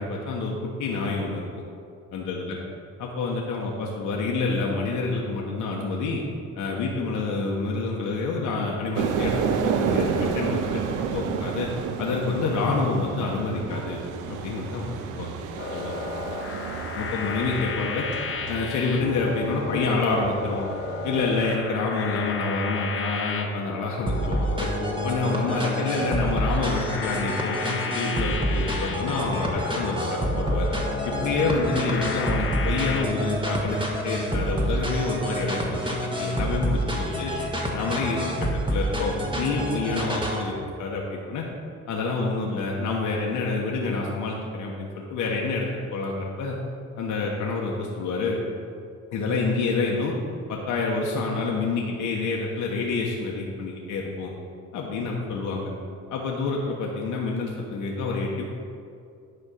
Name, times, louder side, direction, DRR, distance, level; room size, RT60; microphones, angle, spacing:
voice 1, 0.0-1.5 2.1-2.6 3.0-6.2 6.6-11.7 12.0-14.0 14.3-15.4 15.7-16.0 16.9-18.1 18.5-20.6 21.0-24.7 25.0-30.7 31.0-37.3 37.7-41.4 41.9-46.6 47.0-48.4 49.1-50.1 50.5-54.3 54.7-55.7 56.1-58.5, left 3 dB, 80° left, -2 dB, 1.2 m, -28 dB
sound 1, 9.0-21.6, right 6 dB, 90° right, 0.7 m, -31 dB
sound 2, 15.6-33.0, left 5 dB, 45° left, 0.9 m, -34 dB
sound 3, 24.1-40.5, right 1 dB, 15° right, 1.5 m, -28 dB
10.0 x 4.3 x 6.6 m, 2.4 s
cardioid pair, 90°, 30 cm